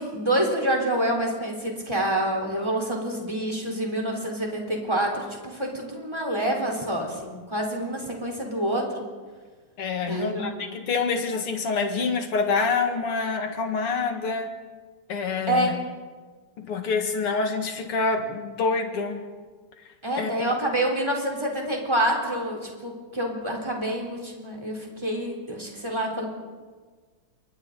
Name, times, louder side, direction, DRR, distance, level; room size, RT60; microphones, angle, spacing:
voice 1, 0.0-9.0 10.0-10.5 15.5-15.7 20.0-26.3, right 1 dB, 10° right, 0 dB, 4.2 m, -27 dB
voice 2, 9.8-14.6 15.1-15.7 16.6-19.2 20.2-20.5, left 4 dB, 85° left, 5 dB, 2.8 m, -26 dB
28.0 x 23.5 x 4.1 m, 1.4 s
omnidirectional pair, 2.4 m